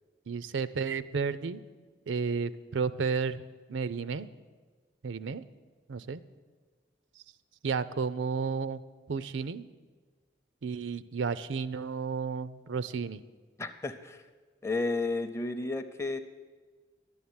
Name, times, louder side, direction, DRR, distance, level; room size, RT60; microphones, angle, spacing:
voice 1, 0.3-1.6 2.1-3.4 3.7-4.3 5.0-5.4 5.9-6.2 7.6-8.8 9.1-9.6 10.6-13.2, right 5 dB, 85° right, 15 dB, 0.5 m, -32 dB
voice 2, 13.6-14.2 14.6-16.2, left 3 dB, 15° left, 9 dB, 0.5 m, -32 dB
11.0 x 7.2 x 9.5 m, 1.4 s
head